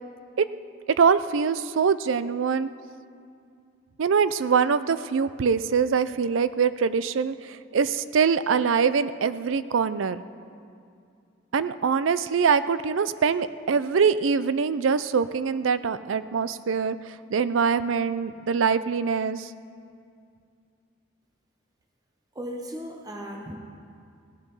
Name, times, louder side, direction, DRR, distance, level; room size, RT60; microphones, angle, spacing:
voice 1, 1.0-2.7 4.0-7.4 7.7-10.2 11.5-17.0 17.3-19.5, right 6 dB, 85° right, 14 dB, 0.4 m, -23 dB
voice 2, 22.3-23.5, equal, 20° right, 2 dB, 0.8 m, -36 dB
17.0 x 9.7 x 5.5 m, 2.4 s
head